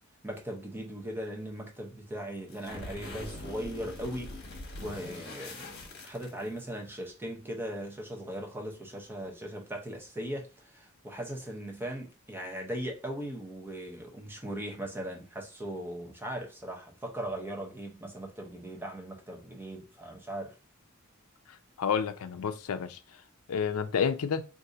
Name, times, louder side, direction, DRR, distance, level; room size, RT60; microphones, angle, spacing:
voice 1, 0.2-5.8 6.0-20.6, right 1 dB, 10° right, 0.7 m, -39 dB
sound 1, 2.5-6.7, left 2 dB, 50° left, 1.0 m, -43 dB
voice 2, 21.8-23.0 23.5-24.5, left 6 dB, 90° left, 0.4 m, -29 dB
2.7 x 2.5 x 3.7 m
head